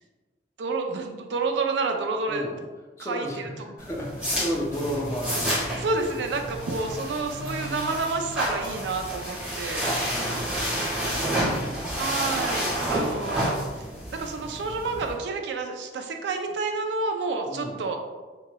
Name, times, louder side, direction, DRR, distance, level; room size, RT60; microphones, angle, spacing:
voice 1, 0.6-2.5 3.0-3.5 5.7-9.9 12.0-13.8 14.1-18.0, right 3 dB, 75° right, 4 dB, 0.4 m, -29 dB
voice 2, 3.0-5.9 6.8-6.9 10.0-10.4 10.9-12.0 17.5-17.8, equal, 15° left, -2 dB, 0.5 m, -34 dB
sound 1, 3.8-15.1, equal, 5° right, 1.1 m, -30 dB
2.9 x 2.8 x 2.2 m, 1.3 s
head